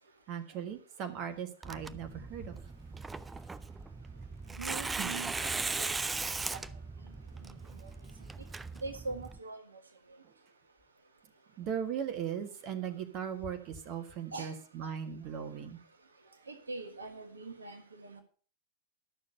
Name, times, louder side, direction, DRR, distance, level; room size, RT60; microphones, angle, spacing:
voice 1, 0.3-2.6 4.9-5.1 10.2-10.3 11.6-15.8, right 8 dB, 40° right, 7 dB, 1.6 m, -38 dB
Tearing, 1.6-9.4, right 3 dB, 10° right, 0.5 m, -38 dB
voice 2, 4.6-6.6 7.4-7.5 7.8-7.9 8.8-9.6 14.3-14.5 14.8-14.9 16.5-18.2, right 3 dB, 75° right, 6 dB, 1.4 m, -43 dB
12.5 x 6.6 x 6.7 m, 0.42 s
figure-of-eight pair, 90°, 0 cm